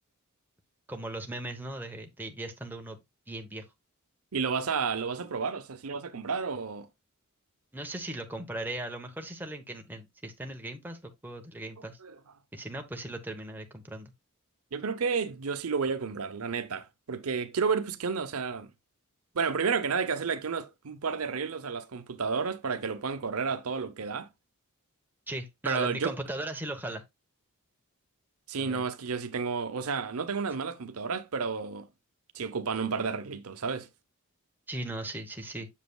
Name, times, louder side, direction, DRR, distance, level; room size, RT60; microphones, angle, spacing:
voice 1, 0.9-3.0 3.3-3.7 7.7-12.0 12.5-14.1 25.3-27.0 28.6-28.9 34.7-35.7, right 1 dB, 10° right, 0.9 m, -38 dB
voice 2, 4.3-6.9 12.0-12.2 14.7-18.7 19.3-24.3 25.6-26.1 28.5-31.9 32.3-33.9, right 5 dB, 80° right, 0.7 m, -31 dB
7.4 x 7.0 x 2.3 m
head